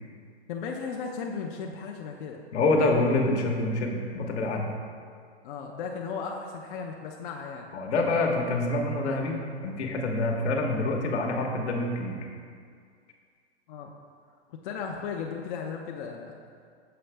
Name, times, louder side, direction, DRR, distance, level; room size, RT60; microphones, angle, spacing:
voice 1, 0.5-2.4 5.4-7.7 13.7-13.9 14.5-16.4, left 5 dB, 50° left, 0 dB, 0.6 m, -36 dB
voice 2, 2.5-4.6 7.7-9.4 9.6-12.2, left 2 dB, 75° left, 1 dB, 1.1 m, -26 dB
6.8 x 4.9 x 3.3 m, 2.2 s
hypercardioid pair, 140°, 34 cm